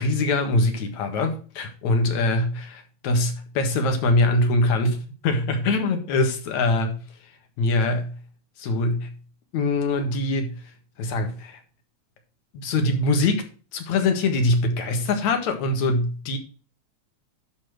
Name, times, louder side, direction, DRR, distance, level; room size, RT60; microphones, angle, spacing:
voice 1, 0.0-7.0 7.6-8.2 8.6-9.1 9.5-10.6 11.0-11.6 12.5-13.5 13.7-16.4, left 2 dB, 75° left, 2.9 m, -23 dB
11.5 x 4.2 x 6.4 m
omnidirectional pair, 3.3 m